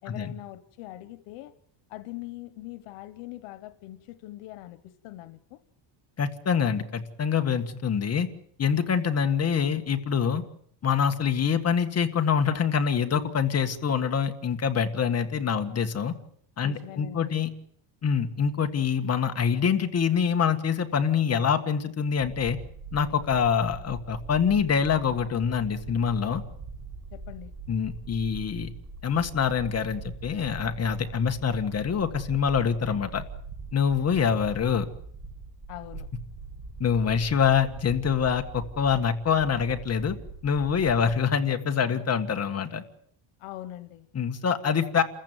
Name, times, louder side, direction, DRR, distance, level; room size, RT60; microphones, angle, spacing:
voice 1, 0.0-1.5 1.9-5.6 16.6-17.4 27.1-27.5 35.7-36.1 43.4-44.1, left 15 dB, 90° left, 13 dB, 1.5 m, -42 dB
voice 2, 6.2-8.3 8.6-10.4 10.8-16.1 16.6-17.5 18.0-22.6 22.9-26.4 27.7-28.7 29.0-33.2 33.7-34.9 36.8-40.2 40.4-42.8 44.1-45.0, left 7 dB, 30° left, 7 dB, 1.7 m, -25 dB
sound 1, 22.2-41.2, right 4 dB, 30° right, 4.6 m, -42 dB
29.5 x 15.0 x 9.1 m, 0.65 s
cardioid pair, 150°, 49 cm